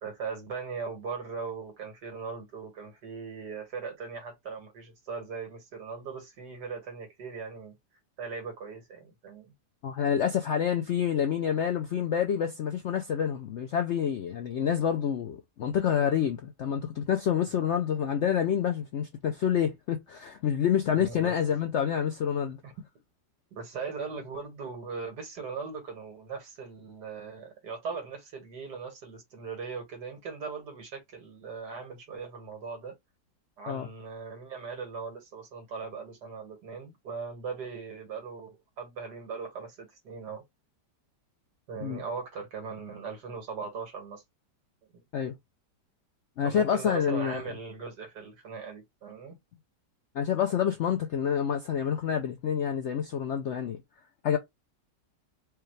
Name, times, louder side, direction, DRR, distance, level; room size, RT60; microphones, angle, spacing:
voice 1, 0.0-7.8 8.2-9.5 21.0-21.3 22.6-22.7 23.5-33.0 33.6-40.4 41.7-44.2 44.9-45.0 46.4-49.4, right 5 dB, 75° right, 2.1 m, -39 dB
voice 2, 9.8-22.6 33.7-33.9 41.8-42.0 45.1-45.4 46.4-47.4 50.1-53.8 54.2-54.4, left 8 dB, 70° left, 0.6 m, -28 dB
4.8 x 2.3 x 3.1 m
omnidirectional pair, 1.8 m